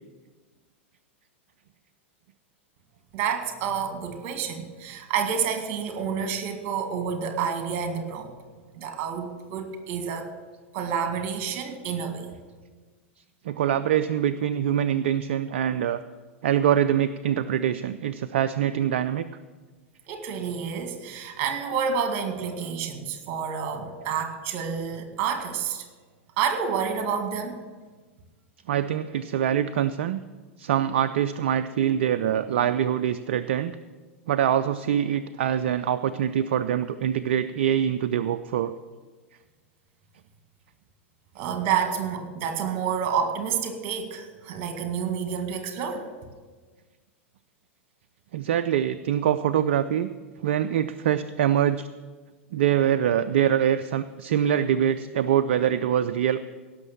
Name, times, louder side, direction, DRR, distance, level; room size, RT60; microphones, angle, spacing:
voice 1, 3.1-8.3 8.7-10.3 10.7-12.3 20.1-25.8 26.4-27.6 41.4-46.1, right 7 dB, 35° right, 6 dB, 2.0 m, -29 dB
voice 2, 13.4-16.0 16.4-19.3 28.7-30.2 30.6-33.8 34.3-38.7 48.3-50.1 50.4-51.9 52.5-56.4, right 10 dB, 55° right, 11 dB, 0.4 m, -24 dB
17.0 x 6.5 x 7.2 m, 1.4 s
figure-of-eight pair, 95°, 7 cm